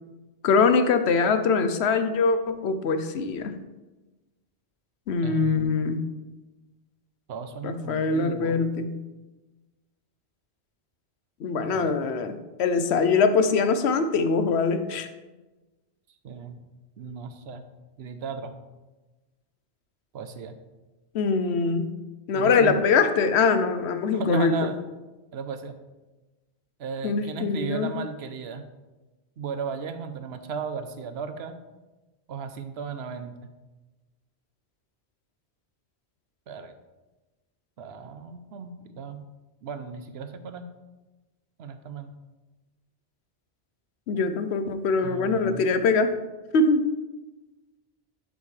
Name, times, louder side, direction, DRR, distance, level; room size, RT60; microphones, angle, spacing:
voice 1, 0.4-3.5 5.1-6.1 7.6-9.0 11.4-15.1 21.1-21.9 22.3-24.7 27.0-27.9 44.1-46.1 46.5-46.9, left 4 dB, 85° left, 9 dB, 1.0 m, -23 dB
voice 2, 5.2-5.8 7.3-8.6 11.7-11.9 16.2-16.6 17.0-17.6 18.0-18.5 20.1-20.5 22.3-22.8 24.1-24.8 25.3-25.7 26.8-28.7 29.4-31.5 32.3-33.4 36.5-36.7 37.8-39.2 39.6-40.6 41.6-42.2 45.0-45.7, right 5 dB, 75° right, 9 dB, 0.9 m, -35 dB
8.4 x 7.4 x 3.3 m, 1.1 s
omnidirectional pair, 1.1 m